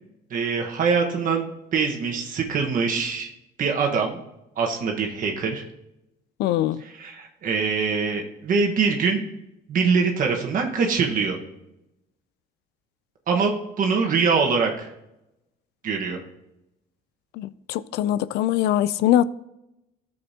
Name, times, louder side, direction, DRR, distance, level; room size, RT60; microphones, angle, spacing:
voice 1, 0.3-3.3 3.6-4.2 4.6-5.6 6.8-9.2 9.7-11.4 13.3-14.9 15.8-16.2, right 5 dB, 55° right, 2 dB, 1.3 m, -23 dB
voice 2, 6.4-6.8 17.4-19.2, left 12 dB, 80° left, 18 dB, 0.4 m, -22 dB
13.5 x 6.8 x 2.8 m, 0.89 s
cardioid pair, 110°, 17 cm